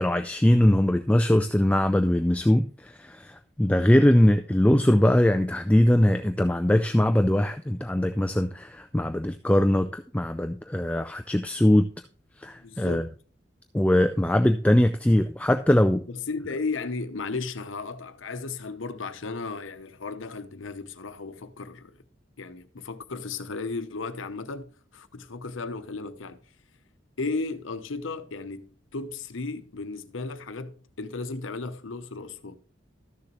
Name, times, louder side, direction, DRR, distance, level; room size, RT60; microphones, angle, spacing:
voice 1, 0.0-11.9 12.4-13.0 13.7-16.0, left 1 dB, 5° left, 0.3 m, -21 dB
voice 2, 12.6-13.1 16.1-22.0 22.4-26.4 27.2-32.6, left 3 dB, 85° left, 0.8 m, -35 dB
13.0 x 6.8 x 3.0 m
head